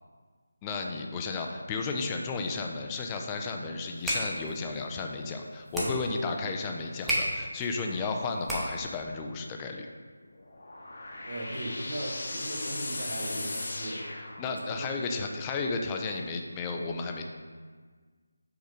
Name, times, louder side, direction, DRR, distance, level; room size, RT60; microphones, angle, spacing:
voice 1, 0.6-9.9 14.4-17.2, left 4 dB, 15° left, 2 dB, 0.4 m, -33 dB
sound 1, 3.8-9.0, right 1 dB, 5° right, 0.8 m, -35 dB
sound 2, 10.3-14.9, left 2 dB, 55° left, 1.0 m, -37 dB
voice 2, 11.2-14.0 14.5-15.3, right 1 dB, 70° right, -2 dB, 1.4 m, -38 dB
5.2 x 3.8 x 5.0 m, 1.5 s
figure-of-eight pair, 165°, 0 cm